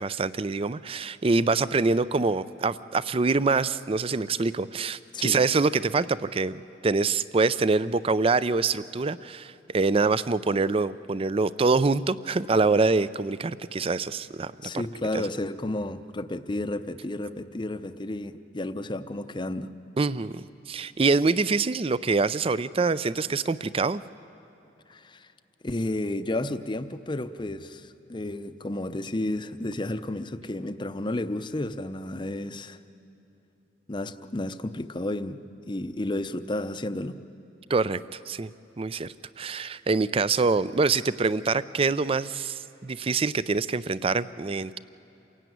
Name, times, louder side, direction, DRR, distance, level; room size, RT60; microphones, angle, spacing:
voice 1, 0.0-14.8 15.1-15.3 20.0-24.0 37.7-38.5 38.8-44.8, right 4 dB, 30° right, 17 dB, 0.4 m, -25 dB
voice 2, 14.6-19.7 24.9-25.3 25.6-32.8 33.9-35.4 35.7-37.2, left 1 dB, 25° left, 11 dB, 0.7 m, -32 dB
28.0 x 16.5 x 9.3 m, 3.0 s
head